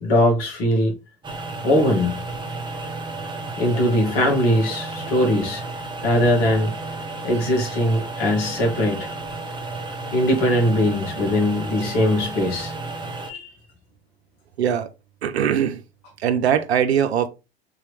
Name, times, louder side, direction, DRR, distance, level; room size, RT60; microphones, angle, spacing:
voice 1, 0.0-1.0 1.6-2.2 3.6-5.6 6.0-6.7 7.2-9.1 10.1-12.7 13.3-13.5, left 1 dB, 60° left, 1.9 m, -20 dB
sound 1, 1.2-13.3, right 3 dB, 15° right, 0.9 m, -32 dB
voice 2, 14.6-14.9 15.2-15.8 16.2-17.3, right 8 dB, 80° right, 0.5 m, -21 dB
3.7 x 3.0 x 3.2 m
hypercardioid pair, 80°, 32 cm